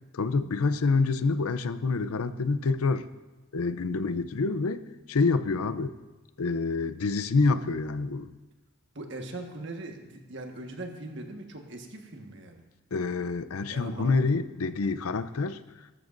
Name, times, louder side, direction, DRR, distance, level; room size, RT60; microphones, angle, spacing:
voice 1, 0.1-3.1 3.5-4.8 5.1-5.9 6.4-8.3 12.9-15.6, left 4 dB, 85° left, 12 dB, 0.6 m, -27 dB
voice 2, 8.9-12.6 13.7-14.4, right 2 dB, 55° right, 3 dB, 1.5 m, -40 dB
18.5 x 13.5 x 2.6 m, 1.2 s
head